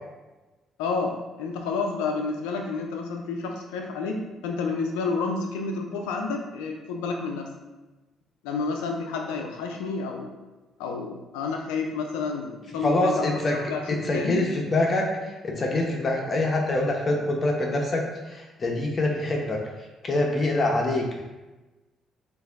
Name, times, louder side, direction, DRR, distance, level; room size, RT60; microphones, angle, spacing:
voice 1, 0.8-7.5 8.4-10.3 10.8-14.4, left 4 dB, 85° left, 2 dB, 0.4 m, -30 dB
voice 2, 12.8-13.5 14.0-19.6 20.0-21.2, left 2 dB, 45° left, 0 dB, 0.8 m, -25 dB
6.4 x 2.6 x 2.5 m, 1.1 s
supercardioid pair, 55°, 0 cm